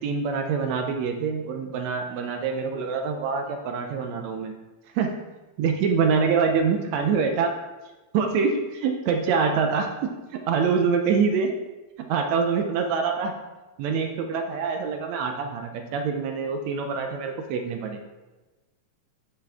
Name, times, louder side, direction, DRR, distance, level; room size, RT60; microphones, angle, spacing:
voice 1, 0.0-4.5 4.9-5.1 5.6-7.5 8.1-11.5 12.1-13.3 13.8-18.0, right 5 dB, 75° right, 4 dB, 1.7 m, -25 dB
9.8 x 5.1 x 3.5 m, 1.2 s
omnidirectional pair, 3.6 m